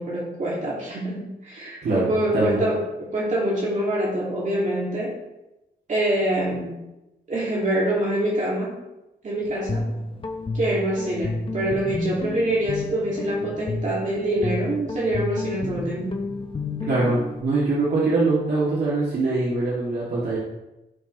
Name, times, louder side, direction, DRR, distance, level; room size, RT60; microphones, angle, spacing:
voice 1, 0.0-5.2 5.9-6.8 7.3-8.8 9.2-9.9 10.5-16.2, right 1 dB, 50° right, -6 dB, 2.6 m, -25 dB
voice 2, 1.8-2.6 16.9-20.4, right 3 dB, 80° right, -7 dB, 2.8 m, -23 dB
Guitar, 9.4-17.4, left 3 dB, 30° left, 1.2 m, -31 dB
16.0 x 6.2 x 3.3 m, 0.97 s
wide cardioid pair, 120°, 17 cm